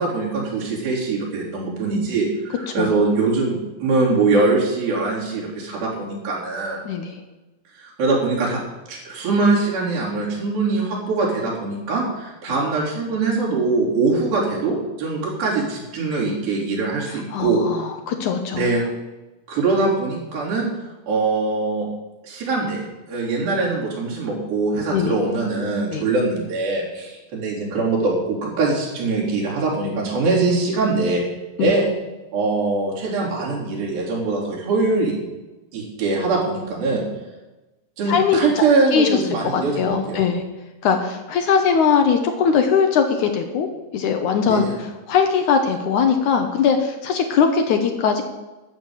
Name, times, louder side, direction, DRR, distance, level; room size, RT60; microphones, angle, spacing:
voice 1, 0.0-6.8 7.8-8.6 8.9-17.6 18.6-18.8 19.5-20.6 21.1-21.9 22.2-31.2 31.6-31.8 32.3-35.1 35.7-37.0 38.0-40.2 44.5-44.7, right 3 dB, 75° right, -4 dB, 5.5 m, -22 dB
voice 2, 2.7-3.0 6.9-7.2 17.1-18.7 24.9-25.1 25.9-26.0 31.6-31.7 38.1-38.6 38.9-39.2 39.5-40.4 40.8-43.7 43.9-48.2, left 6 dB, 70° left, 6 dB, 2.1 m, -20 dB
13.0 x 6.7 x 8.9 m, 1.1 s
omnidirectional pair, 4.2 m